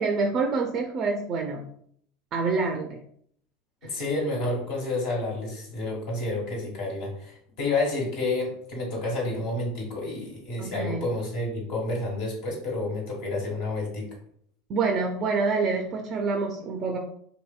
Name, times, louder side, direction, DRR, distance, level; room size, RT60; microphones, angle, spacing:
voice 1, 0.0-1.7 2.3-3.0 10.6-11.1 14.7-17.0, right 4 dB, 45° right, 2 dB, 0.4 m, -27 dB
voice 2, 3.8-14.1, left 2 dB, 70° left, -3 dB, 1.2 m, -30 dB
2.7 x 2.7 x 2.2 m, 0.65 s
hypercardioid pair, 90°, 0 cm